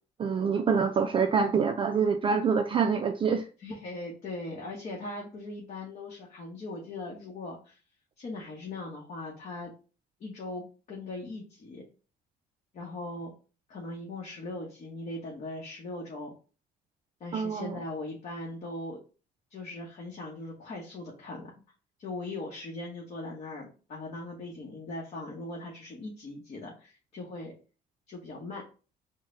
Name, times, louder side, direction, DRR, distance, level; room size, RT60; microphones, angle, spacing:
voice 1, 0.2-3.4 17.3-17.7, right 6 dB, 30° right, 0.3 m, -26 dB
voice 2, 3.6-7.8 8.2-9.7 10.2-11.8 12.7-13.3 13.7-16.3 17.2-19.0 19.5-21.5 22.0-27.5 28.1-28.6, left 2 dB, 45° left, 0.9 m, -39 dB
3.8 x 2.1 x 3.7 m
cardioid pair, 110°, 17 cm